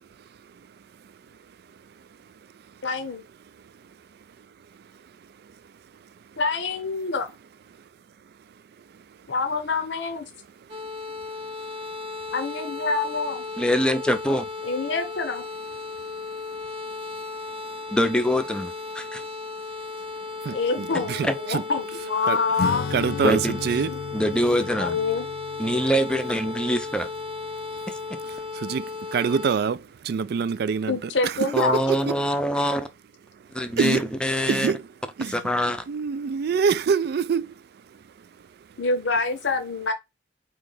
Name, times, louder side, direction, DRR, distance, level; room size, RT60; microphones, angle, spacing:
voice 1, 0.0-2.8 3.5-6.4 7.8-7.9 8.2-9.3 10.6-12.3 15.9-18.0 19.1-19.3 19.9-21.6 22.3-22.4 22.9-24.2 27.6-27.9 28.2-32.2 33.3-34.1 34.5-34.9 35.2-35.4 35.9-38.8, right 6 dB, 60° right, 0.3 m, -30 dB
voice 2, 2.8-3.2 6.4-7.3 9.3-10.2 12.3-13.4 14.6-15.4 20.5-22.8 23.9-24.0 24.8-25.3 30.9-31.8 38.8-39.9, left 4 dB, 80° left, 0.8 m, -26 dB
sound 1, 10.7-29.6, left 4 dB, 30° right, 0.7 m, -35 dB
voice 3, 13.6-14.5 17.9-19.2 21.2-21.3 23.2-23.6 24.1-25.0 25.6-27.1 27.9-28.2 31.5-32.9 33.5-34.7 35.3-35.8, equal, 5° left, 0.5 m, -24 dB
Acoustic guitar / Strum, 22.6-28.5, left 5 dB, 60° left, 0.3 m, -35 dB
4.3 x 3.1 x 3.9 m
head